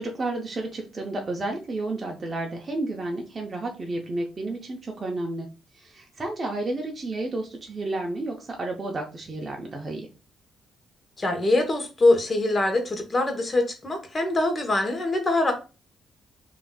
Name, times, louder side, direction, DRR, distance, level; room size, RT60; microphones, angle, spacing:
voice 1, 0.0-5.5 5.7-10.1, right 2 dB, 35° right, 1 dB, 0.6 m, -31 dB
voice 2, 11.2-15.5, left 2 dB, 30° left, 4 dB, 1.0 m, -23 dB
3.6 x 2.6 x 2.3 m, 0.31 s
cardioid pair, 90°, 0 cm